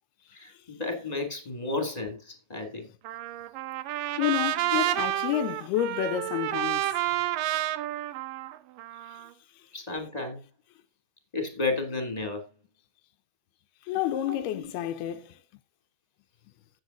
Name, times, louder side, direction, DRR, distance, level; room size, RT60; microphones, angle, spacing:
voice 1, 0.3-2.9 9.7-10.4 11.3-12.4 14.2-14.7, left 3 dB, 15° left, 1.9 m, -32 dB
Trumpet, 3.0-9.3, right 15 dB, 75° right, 2.1 m, -30 dB
voice 2, 4.2-6.8 13.9-15.3, left 12 dB, 85° left, 2.8 m, -29 dB
16.0 x 8.1 x 2.7 m
omnidirectional pair, 4.6 m